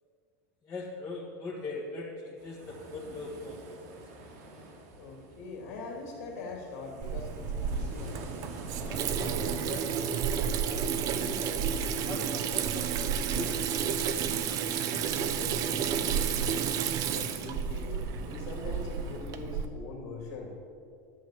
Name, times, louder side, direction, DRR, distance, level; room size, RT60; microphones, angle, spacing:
voice 1, 0.6-4.2 8.8-14.0, left 3 dB, 20° left, -6 dB, 1.8 m, -41 dB
sound 1, 2.4-19.2, right 2 dB, 80° right, 2.6 m, -48 dB
voice 2, 5.0-8.2 14.8-16.8 17.0-20.5, left 3 dB, 75° left, 0 dB, 2.7 m, -42 dB
Water tap faucet / Sink (filling or washing), 7.0-19.7, right 7 dB, 45° right, 0.8 m, -31 dB
12.0 x 7.3 x 7.5 m, 2.3 s
supercardioid pair, 140°, 9 cm